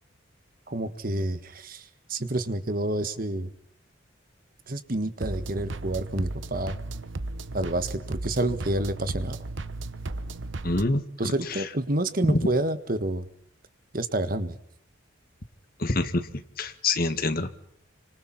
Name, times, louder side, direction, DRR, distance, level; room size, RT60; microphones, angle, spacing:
voice 1, 0.7-1.8 2.1-3.5 4.7-6.8 7.5-9.4 11.2-13.2 13.9-14.6, right 1 dB, 45° right, 11 dB, 1.6 m, -28 dB
sound 1, 5.2-10.8, right 2 dB, 75° right, 1.0 m, -35 dB
voice 2, 10.6-11.7 12.2-12.5 15.8-17.5, left 2 dB, 50° left, 9 dB, 1.7 m, -27 dB
30.0 x 26.0 x 4.3 m, 0.70 s
head